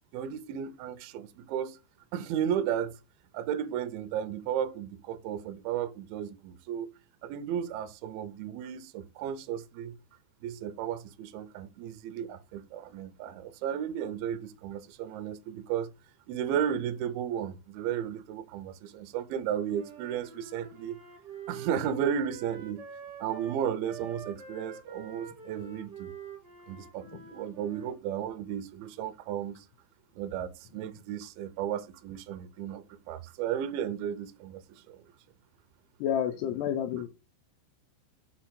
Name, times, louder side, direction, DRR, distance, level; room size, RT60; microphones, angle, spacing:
voice 1, 0.1-1.8 2.1-3.0 3.3-6.9 7.2-10.0 10.4-15.9 16.3-21.0 21.5-22.9 23.2-26.1 26.7-29.7 30.2-35.0, right 9 dB, 80° right, 2.2 m, -34 dB
Wind instrument woodwind instrument, 19.6-28.0, right 5 dB, 40° right, 1.8 m, -47 dB
voice 2, 36.0-37.1, left 9 dB, 80° left, 2.6 m, -30 dB
6.0 x 4.4 x 4.6 m
omnidirectional pair, 5.1 m